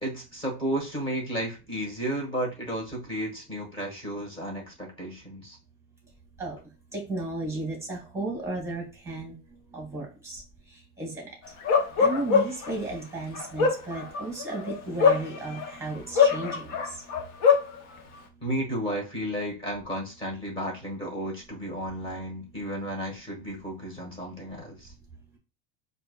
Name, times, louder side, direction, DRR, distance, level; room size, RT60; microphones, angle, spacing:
voice 1, 0.0-5.6 18.4-24.9, right 1 dB, 15° left, -2 dB, 1.4 m, -33 dB
voice 2, 6.9-9.3 9.7-10.4 11.0-11.3 12.0-16.8, right 2 dB, 5° right, 0 dB, 1.4 m, -34 dB
Bark, 11.6-12.7 13.3-15.7 16.2-17.7, left 6 dB, 70° left, 0.9 m, -22 dB
4.5 x 2.5 x 2.3 m, 0.30 s
cardioid pair, 160°, 41 cm